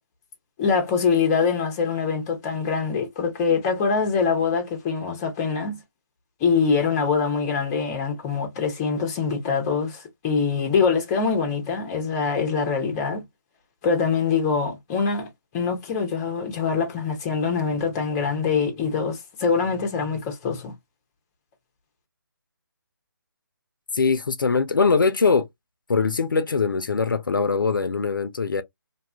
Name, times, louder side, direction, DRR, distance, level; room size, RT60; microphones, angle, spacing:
voice 1, 0.6-5.8 6.4-13.2 13.8-15.3 15.5-20.7, left 5 dB, 15° left, 0.6 m, -24 dB
voice 2, 23.9-25.5 25.9-28.6, left 4 dB, 65° left, 0.5 m, -22 dB
2.6 x 2.3 x 2.3 m
figure-of-eight pair, 150°, 12 cm